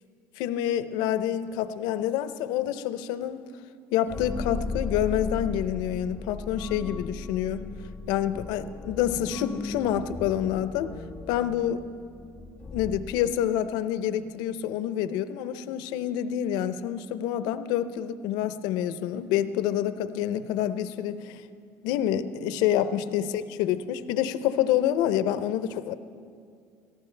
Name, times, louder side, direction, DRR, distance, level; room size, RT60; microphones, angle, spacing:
voice 1, 0.4-3.4 3.9-7.7 8.1-10.9 11.3-11.8 12.7-21.4 21.8-25.9, left 10 dB, 75° left, 13 dB, 0.6 m, -27 dB
Tightrope pizz, 4.1-13.7, left 3 dB, 20° left, 0.4 m, -37 dB
22.0 x 14.5 x 3.3 m, 2.3 s
supercardioid pair, 95°, 7 cm